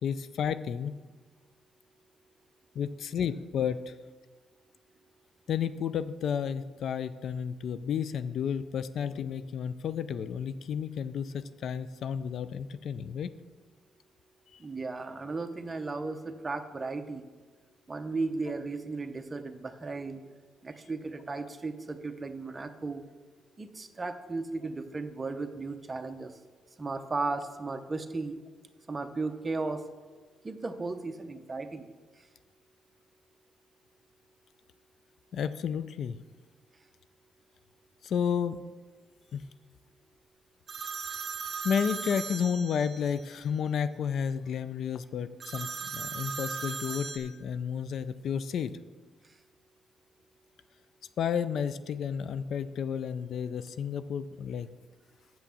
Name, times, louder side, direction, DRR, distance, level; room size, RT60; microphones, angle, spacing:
voice 1, 0.0-0.9 2.8-3.9 5.5-13.3 14.5-14.6 35.3-36.2 38.0-38.6 39.3-39.4 41.6-48.8 51.2-54.7, left 7 dB, 65° left, 14 dB, 0.4 m, -32 dB
voice 2, 14.6-17.2 17.9-20.2 20.6-23.0 23.6-26.3 26.8-28.3 28.9-29.8 30.4-31.9, right 3 dB, 25° right, 8 dB, 0.7 m, -35 dB
sound 1, 40.7-43.2 45.4-47.2, right 5 dB, 45° right, 1.3 m, -37 dB
7.5 x 5.9 x 6.9 m, 1.4 s
cardioid pair, 90°, 0 cm